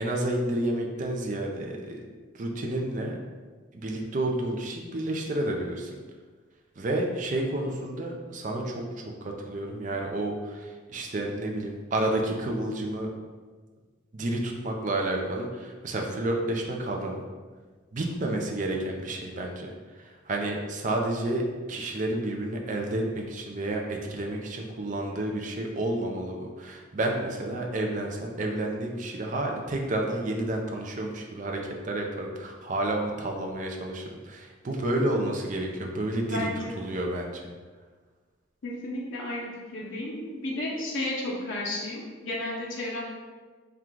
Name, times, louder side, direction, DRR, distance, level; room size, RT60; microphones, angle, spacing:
voice 1, 0.0-2.0 2.3-3.2 3.7-5.9 6.8-13.1 14.1-17.2 17.9-37.4, right 1 dB, 40° right, 1 dB, 0.4 m, -30 dB
voice 2, 36.2-37.0 38.6-43.0, left 1 dB, 75° left, -3 dB, 0.7 m, -33 dB
4.4 x 2.3 x 3.7 m, 1.4 s
head